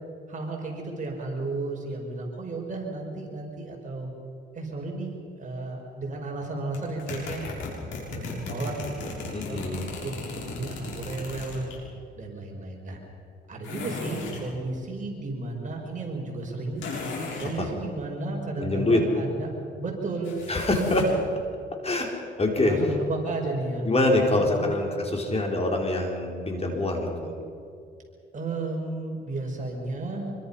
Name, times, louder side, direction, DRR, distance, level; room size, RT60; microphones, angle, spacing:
voice 1, 0.3-4.1 4.6-7.4 8.1-11.7 12.2-13.0 13.5-16.8 17.4-19.5 19.8-20.4 22.6-24.7 28.3-30.4, right 2 dB, 40° right, 0 dB, 5.4 m, -33 dB
sound 1, 6.7-11.8 13.6-14.5 16.8-17.5 20.2-21.2, left 3 dB, 75° left, 6.5 m, -36 dB
voice 2, 9.3-9.8 17.6-17.7 18.6-19.0 20.5-21.0 21.8-22.1 22.4-22.8 23.8-27.3, left 2 dB, 30° left, 1 dB, 4.8 m, -25 dB
26.0 x 23.5 x 5.7 m, 2.5 s
cardioid pair, 90°, 20 cm